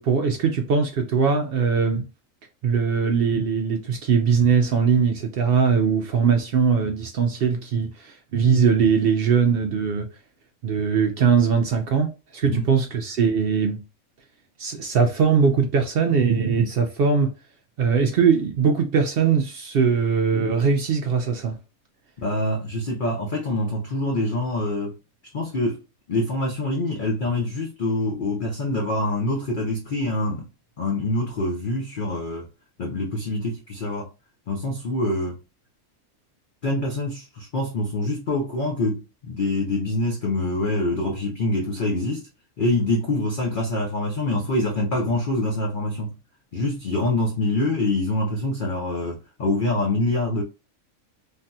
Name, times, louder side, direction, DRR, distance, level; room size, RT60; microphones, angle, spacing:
voice 1, 0.0-2.1 2.6-10.1 10.6-13.8 14.6-17.3 17.8-21.6, right 6 dB, 75° right, 0.5 m, -21 dB
voice 2, 22.2-25.0 25.3-25.8 26.1-30.5 30.8-32.5 32.8-34.1 34.5-35.4 36.6-42.3 42.6-46.1 46.5-50.4, left 2 dB, 50° left, 0.6 m, -25 dB
3.3 x 2.7 x 2.2 m
omnidirectional pair, 1.5 m